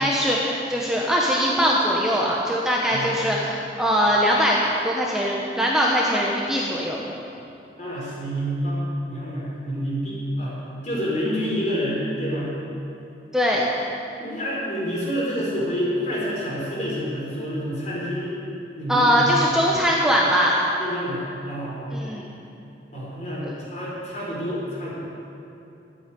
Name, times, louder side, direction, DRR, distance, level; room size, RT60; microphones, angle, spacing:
voice 1, 0.0-4.6 4.8-7.0 13.3-13.6 18.9-20.5 21.9-22.3 23.4-23.5, equal, 5° right, -4 dB, 1.1 m, -21 dB
voice 2, 7.8-12.5 14.2-18.4 18.8-19.6 20.8-22.1 22.9-24.9, equal, 40° left, -5 dB, 4.4 m, -28 dB
12.5 x 9.0 x 9.3 m, 2.7 s
head